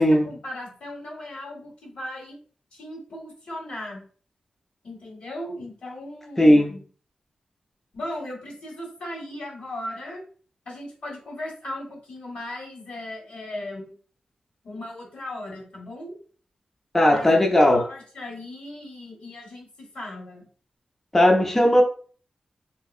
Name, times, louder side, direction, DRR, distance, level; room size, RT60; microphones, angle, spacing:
voice 1, 0.0-2.4 2.7-4.0 4.8-6.8 7.9-10.2 10.6-13.9 14.6-16.1 17.1-17.5 17.7-20.5, left 1 dB, 80° left, -2 dB, 1.4 m, -37 dB
voice 2, 6.4-6.7 16.9-17.8 21.1-21.8, left 1 dB, 15° left, 1 dB, 0.4 m, -17 dB
3.3 x 2.7 x 2.4 m, 0.42 s
wide cardioid pair, 145°, 2 cm